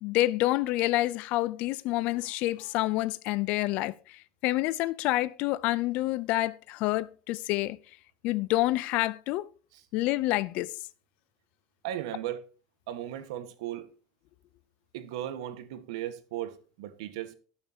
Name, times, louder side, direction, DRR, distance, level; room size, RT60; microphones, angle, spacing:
voice 1, 0.0-7.8 8.2-9.5 9.9-10.8, left 17 dB, 55° left, 0.4 m, -28 dB
voice 2, 11.8-12.4 12.9-13.9 14.9-17.3, right 12 dB, 85° right, 1.4 m, -36 dB
17.5 x 6.5 x 2.8 m
supercardioid pair, 140°, 3 cm